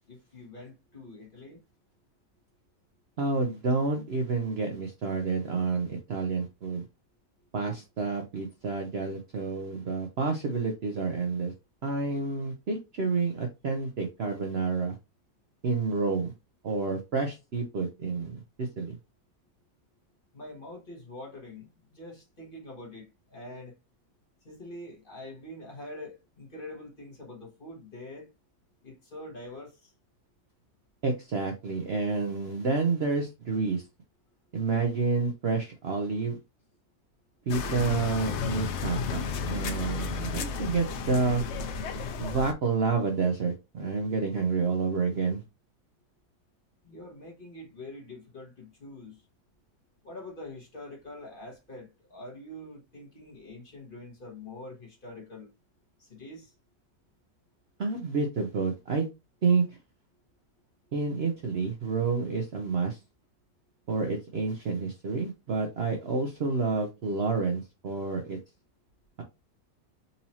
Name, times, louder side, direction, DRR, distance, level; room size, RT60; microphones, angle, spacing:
voice 1, 0.1-1.6 20.3-23.7 24.4-28.3 28.8-29.9 46.8-49.2 50.0-55.5 56.0-56.5, left 1 dB, 35° left, 1.3 m, -45 dB
voice 2, 3.2-6.8 7.5-11.5 11.8-15.0 15.6-16.3 16.6-19.0 31.0-33.8 34.5-36.4 37.5-41.4 42.2-45.4 57.8-59.1 59.4-59.8 60.9-63.0 63.9-68.4, right 4 dB, 55° right, 0.7 m, -29 dB
sound 1, 37.5-42.5, left 5 dB, 70° left, 0.6 m, -33 dB
4.1 x 2.8 x 2.8 m
omnidirectional pair, 1.7 m